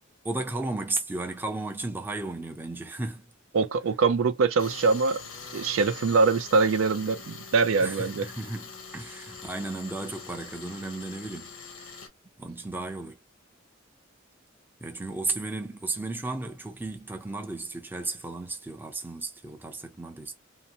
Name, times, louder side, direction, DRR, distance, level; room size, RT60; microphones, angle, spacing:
voice 1, 0.2-3.3 7.8-11.5 12.4-13.2 14.8-20.3, right 2 dB, 10° right, 0.5 m, -34 dB
voice 2, 3.5-5.2 5.5-8.3, right 4 dB, 75° right, 0.4 m, -23 dB
Tools, 4.6-12.1, left 5 dB, 85° left, 0.8 m, -43 dB
2.8 x 2.1 x 2.7 m
head